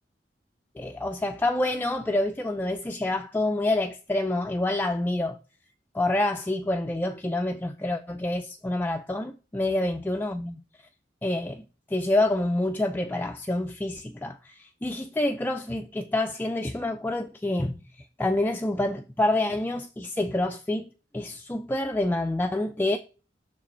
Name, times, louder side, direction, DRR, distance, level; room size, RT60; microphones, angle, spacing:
voice 1, 0.8-5.4 5.9-10.6 11.2-11.6 11.9-23.0, left 2 dB, 10° left, 0.3 m, -27 dB
6.1 x 4.8 x 4.3 m
head